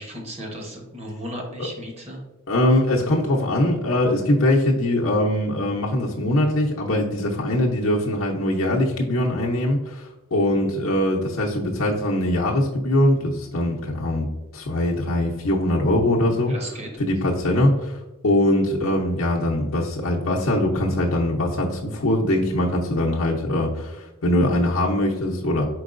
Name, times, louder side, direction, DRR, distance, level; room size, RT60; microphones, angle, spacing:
voice 1, 0.0-2.2 16.5-16.9, equal, 30° right, 0 dB, 1.0 m, -35 dB
voice 2, 2.5-14.3 14.5-25.6, left 1 dB, 75° left, -3 dB, 0.7 m, -22 dB
4.6 x 4.4 x 2.5 m, 1.1 s
head